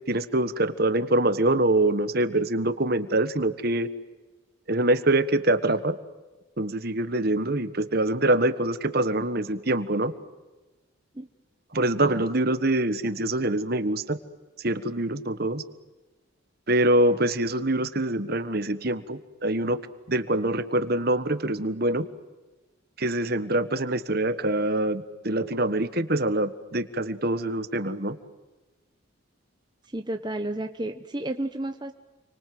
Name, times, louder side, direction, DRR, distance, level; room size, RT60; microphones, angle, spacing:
voice 1, 0.1-3.9 4.7-6.0 6.6-10.1 11.7-14.2 14.6-15.6 16.7-19.8 20.1-22.0 23.0-28.2, right 1 dB, 50° right, 12 dB, 1.5 m, -24 dB
voice 2, 29.9-31.9, right 1 dB, 20° right, 6 dB, 1.0 m, -32 dB
30.0 x 24.5 x 7.8 m, 1.2 s
head